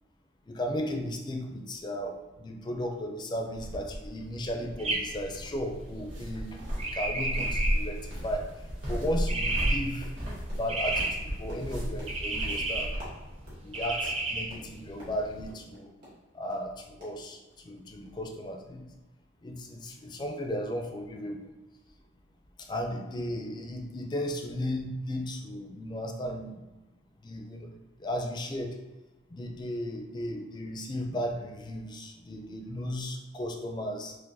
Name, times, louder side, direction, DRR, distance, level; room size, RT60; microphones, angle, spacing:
voice 1, 0.5-8.5 8.9-10.1 10.5-12.9 13.6-15.9 16.3-17.4 17.6-18.9 19.4-21.4 22.6-26.6 27.2-27.7 28.0-28.7 29.3-34.2, equal, 25° left, 3 dB, 0.4 m, -35 dB
sound 1, 3.5-13.1, equal, 75° right, 1.3 m, -34 dB
sound 2, 4.8-15.5, right 2 dB, 30° right, 0.5 m, -34 dB
sound 3, 8.0-8.2 8.5-8.7 9.0-9.3 9.5-16.7 17.0-17.8 18.0-18.2 18.5-18.6, equal, 55° right, 1.4 m, -52 dB
4.5 x 2.2 x 2.6 m, 1.1 s
head